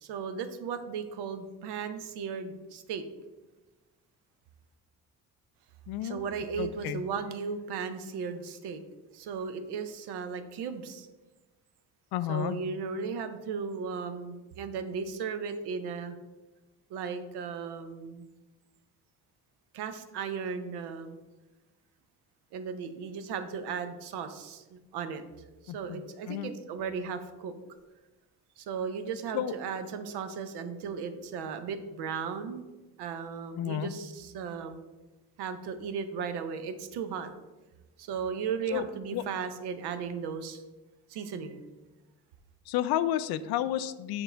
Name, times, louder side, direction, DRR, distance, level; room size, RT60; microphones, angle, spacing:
voice 1, 0.0-3.0 6.0-8.8 9.1-11.1 12.3-16.1 16.9-18.3 19.7-21.2 22.5-25.2 25.6-27.5 28.6-32.6 33.0-34.8 35.4-37.3 38.0-40.6 41.1-41.6, right 6 dB, 75° right, 9 dB, 0.8 m, -36 dB
voice 2, 5.9-6.2 6.6-7.0 12.1-12.6 25.7-26.0 26.3-26.5 29.3-29.5 33.6-33.9 38.7-38.8 39.1-39.2 42.7-44.2, left 12 dB, 70° left, 13 dB, 0.5 m, -31 dB
6.9 x 3.7 x 4.4 m, 1.1 s
supercardioid pair, 80°, 39 cm